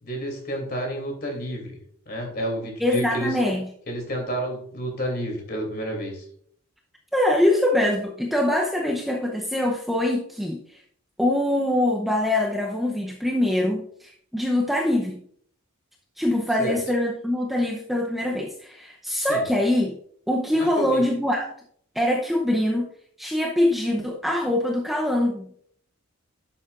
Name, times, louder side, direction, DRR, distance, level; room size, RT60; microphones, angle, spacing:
voice 1, 0.0-1.7 2.1-3.4 3.9-6.2 16.6-16.7 19.2-19.4 20.5-21.0, right 1 dB, 45° left, 2 dB, 2.8 m, -30 dB
voice 2, 2.8-3.7 7.1-10.6 11.2-15.2 16.2-20.0 20.3-21.5 21.9-22.9 23.2-25.5, left 1 dB, ahead, 0 dB, 0.7 m, -23 dB
11.5 x 7.5 x 2.5 m, 0.62 s
head